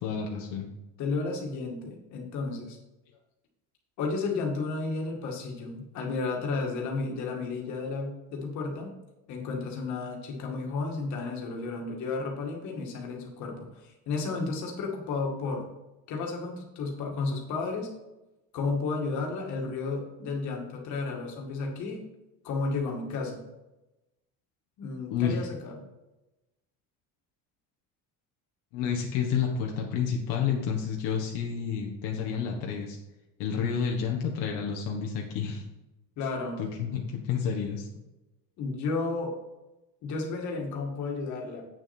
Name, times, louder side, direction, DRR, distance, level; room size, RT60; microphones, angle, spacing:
voice 1, 0.0-0.7 25.1-25.4 28.7-33.0 33.4-35.6 36.6-37.9, left 7 dB, 75° left, 0 dB, 1.5 m, -30 dB
voice 2, 1.0-2.8 4.0-8.9 9.3-15.6 16.1-17.9 18.5-22.0 22.4-23.4 24.8-25.8 36.2-36.6 38.6-39.3 40.0-41.6, left 3 dB, 50° left, 1 dB, 2.1 m, -32 dB
8.7 x 6.5 x 4.4 m, 0.99 s
cardioid pair, 170°, 38 cm